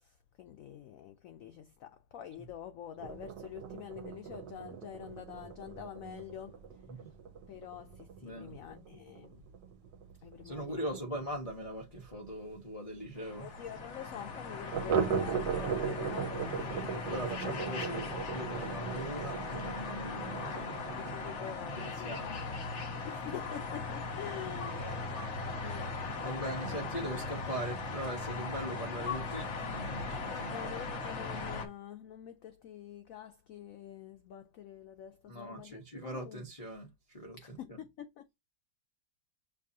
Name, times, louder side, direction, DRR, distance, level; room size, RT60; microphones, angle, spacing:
voice 1, 0.0-6.6 7.5-9.4 10.2-11.0 13.4-17.9 21.0-22.6 23.0-26.6 30.2-36.4 37.4-38.4, left 10 dB, 85° left, 0.7 m, -47 dB
sound 1, 3.0-12.2 12.5-12.6 13.0-13.1 13.4-13.5 14.7-21.4, right 7 dB, 75° right, 1.5 m, -38 dB
voice 2, 8.2-8.6 10.4-13.5 17.0-20.8 21.8-22.4 24.7-25.0 25.6-25.8 26.2-30.7 35.3-37.8, right 1 dB, 25° left, 0.9 m, -41 dB
sound 2, 13.2-31.7, left 3 dB, 45° left, 1.1 m, -39 dB
6.7 x 2.6 x 2.7 m
omnidirectional pair, 2.0 m